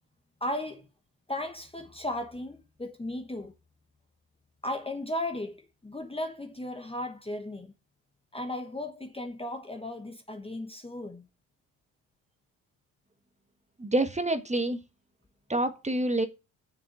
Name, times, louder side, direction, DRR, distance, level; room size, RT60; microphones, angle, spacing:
voice 1, 0.4-0.9 1.3-3.5 4.6-7.7 8.3-11.3, left 1 dB, 15° left, 1.2 m, -36 dB
voice 2, 13.8-14.8 15.5-16.3, right 1 dB, 15° right, 1.5 m, -27 dB
7.1 x 6.9 x 6.7 m
supercardioid pair, 70°, 41 cm